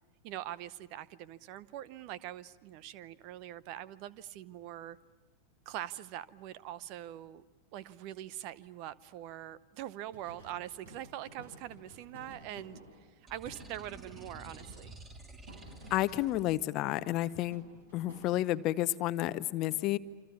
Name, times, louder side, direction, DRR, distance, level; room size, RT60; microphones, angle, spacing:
voice 1, 0.2-5.0 5.7-7.4 7.7-14.9, right 13 dB, 45° right, 19 dB, 0.8 m, -43 dB
sound 1, 10.1-16.6 16.8-18.7, right 1 dB, 65° right, 5.5 m, -54 dB
sound 2, 13.3-16.6, right 3 dB, 20° right, 3.2 m, -51 dB
voice 2, 15.9-17.6 17.9-20.0, left 15 dB, 40° left, 15 dB, 0.8 m, -31 dB
28.0 x 26.0 x 7.1 m, 1.3 s
figure-of-eight pair, 90°, 0 cm